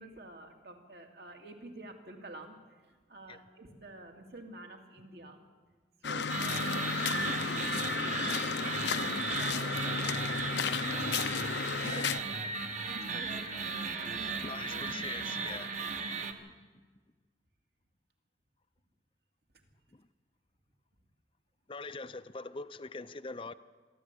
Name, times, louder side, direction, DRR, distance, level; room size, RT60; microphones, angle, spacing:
voice 1, 0.0-5.4 6.0-12.5 12.9-14.6 15.6-15.7, right 2 dB, 60° right, 2 dB, 2.7 m, -48 dB
sound 1, 6.0-12.2, left 5 dB, 80° left, 0.7 m, -33 dB
sound 2, 6.3-16.3, right 4 dB, 45° right, 1.4 m, -36 dB
voice 2, 14.4-15.7 21.7-23.5, left 3 dB, 30° left, 13 dB, 0.5 m, -42 dB
26.0 x 12.0 x 8.4 m, 1.4 s
head